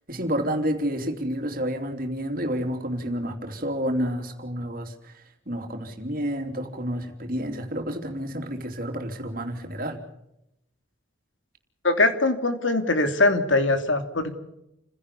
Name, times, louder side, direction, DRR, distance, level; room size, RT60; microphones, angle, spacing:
voice 1, 0.1-10.0, equal, 45° right, 5 dB, 3.4 m, -30 dB
voice 2, 11.8-14.4, left 2 dB, 80° left, 8 dB, 2.9 m, -22 dB
29.0 x 16.5 x 7.0 m, 0.84 s
head